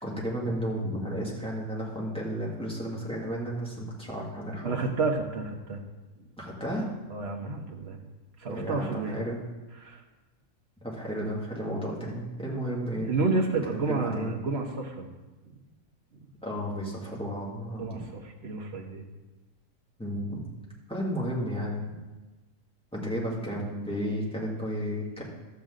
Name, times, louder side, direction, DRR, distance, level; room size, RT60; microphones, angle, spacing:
voice 1, 0.0-4.8 6.4-6.9 8.5-9.4 10.8-13.1 13.7-14.4 16.4-18.0 20.0-20.4 20.9-21.8 22.9-25.2, equal, 5° left, -5 dB, 2.2 m, -33 dB
voice 2, 4.6-5.8 7.1-8.0 8.4-9.2 9.8-10.0 13.1-15.1 17.7-19.0, right 3 dB, 45° right, 2 dB, 1.3 m, -30 dB
12.0 x 8.4 x 3.9 m, 1.2 s
omnidirectional pair, 1.6 m